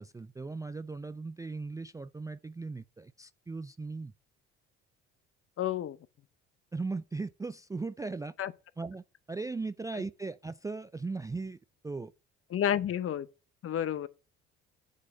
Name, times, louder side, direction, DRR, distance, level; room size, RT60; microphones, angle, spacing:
voice 1, 0.0-4.1 6.7-8.3 8.8-11.6 11.8-12.1, right 3 dB, 10° right, 0.3 m, -38 dB
voice 2, 5.6-6.0 8.4-8.5 12.5-13.3 13.6-14.1, left 10 dB, 45° left, 0.7 m, -30 dB
8.3 x 4.1 x 6.4 m
hypercardioid pair, 60°, 31 cm